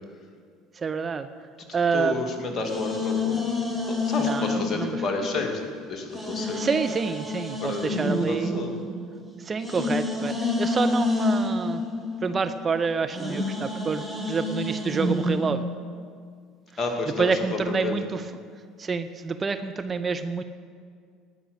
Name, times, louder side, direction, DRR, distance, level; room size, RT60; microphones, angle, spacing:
voice 1, 0.8-1.3 1.7-2.2 4.3-4.9 6.6-8.6 9.4-11.8 12.2-15.6 17.2-18.2 18.8-20.4, right 5 dB, 30° right, 9 dB, 0.6 m, -27 dB
voice 2, 1.7-3.4 3.9-6.6 7.6-8.9 16.8-18.0, left 3 dB, 35° left, 2 dB, 2.4 m, -31 dB
sound 1, 1.9-5.7 6.1-15.5, left 2 dB, 5° left, 2.2 m, -29 dB
18.5 x 6.2 x 8.2 m, 2.1 s
figure-of-eight pair, 65°, 0 cm